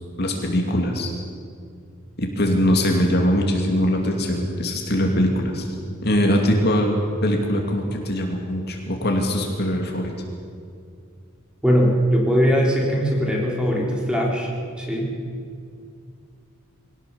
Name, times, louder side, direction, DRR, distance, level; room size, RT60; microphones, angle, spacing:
voice 1, 0.2-1.1 2.2-5.7 6.0-7.0 7.2-10.1, equal, 50° left, 1 dB, 2.6 m, -22 dB
voice 2, 11.6-14.5 14.8-15.1, equal, 5° right, -2 dB, 3.9 m, -20 dB
22.0 x 18.0 x 7.1 m, 2.3 s
head